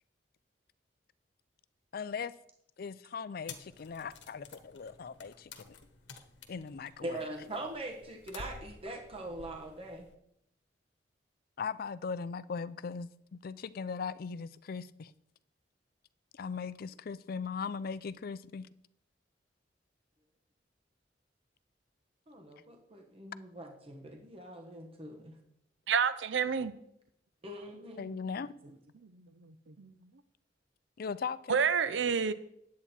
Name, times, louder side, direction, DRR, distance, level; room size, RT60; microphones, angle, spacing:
voice 1, 1.9-2.3 2.8-5.8 6.1-6.2 6.5-7.3 11.6-15.1 16.3-18.7 28.0-28.5 31.0-31.6, left 5 dB, 55° left, 0.4 m, -39 dB
sound 1, 3.5-10.2, left 4 dB, 75° left, 1.1 m, -52 dB
voice 2, 7.0-10.1 22.3-25.3 27.4-28.1, right 1 dB, 30° right, 1.2 m, -42 dB
voice 3, 25.9-26.7 28.1-28.2 29.4-29.9 31.5-32.3, right 6 dB, 85° right, 0.6 m, -29 dB
10.0 x 8.5 x 4.3 m
head